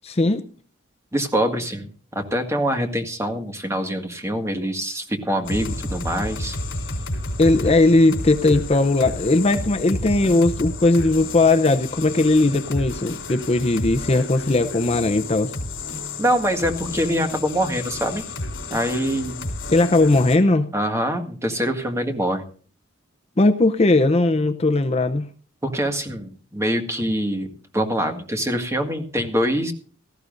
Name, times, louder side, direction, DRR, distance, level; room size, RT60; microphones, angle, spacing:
voice 1, 0.0-0.4 7.4-15.5 19.7-20.7 23.4-25.3, left 2 dB, 30° left, 0.6 m, -18 dB
voice 2, 1.1-6.6 16.2-18.2 18.7-19.4 20.7-22.4 25.6-27.5 27.7-29.7, equal, 15° right, 1.8 m, -24 dB
sound 1, 5.4-20.4, left 2 dB, 75° left, 3.6 m, -31 dB
17.5 x 14.5 x 2.6 m
head